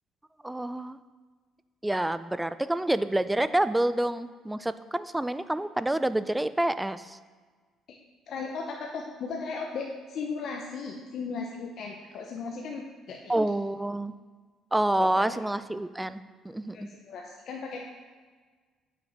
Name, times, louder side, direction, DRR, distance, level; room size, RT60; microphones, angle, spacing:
voice 1, 0.4-1.0 1.8-7.2 13.3-14.1 14.7-16.9, right 1 dB, 10° right, 13 dB, 0.3 m, -28 dB
voice 2, 8.3-13.4 15.0-15.4 16.7-17.8, left 4 dB, 60° left, 0 dB, 0.7 m, -36 dB
7.7 x 5.9 x 4.1 m, 1.5 s
cardioid pair, 105°, 0 cm